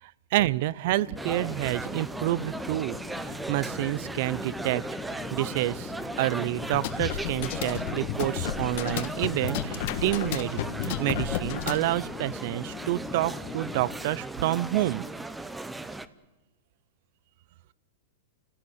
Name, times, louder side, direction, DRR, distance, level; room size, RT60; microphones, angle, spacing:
voice 1, 0.0-3.0 3.2-5.9 6.2-15.0, right 16 dB, 55° right, 21 dB, 0.6 m, -29 dB
Chatter / Fixed-wing aircraft airplane, 0.8-14.2, left 6 dB, 20° left, 1.1 m, -42 dB
sound 1, 1.2-16.1, right 2 dB, 5° right, 0.7 m, -37 dB
sound 2, 6.6-11.9, left 10 dB, 55° left, 1.5 m, -32 dB
28.0 x 16.0 x 8.0 m, 1.1 s
supercardioid pair, 150°, 0 cm